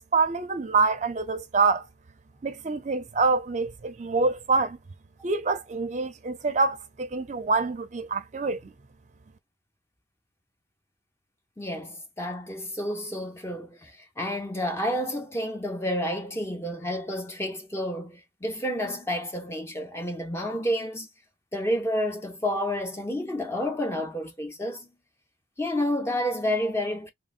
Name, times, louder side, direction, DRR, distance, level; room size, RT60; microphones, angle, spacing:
voice 1, 0.1-1.9 2.4-4.8 5.2-8.7, right 4 dB, 45° right, 0.5 m, -26 dB
voice 2, 11.6-21.1 21.5-24.9 25.6-27.1, equal, 15° left, 0.6 m, -30 dB
3.7 x 2.0 x 2.4 m
head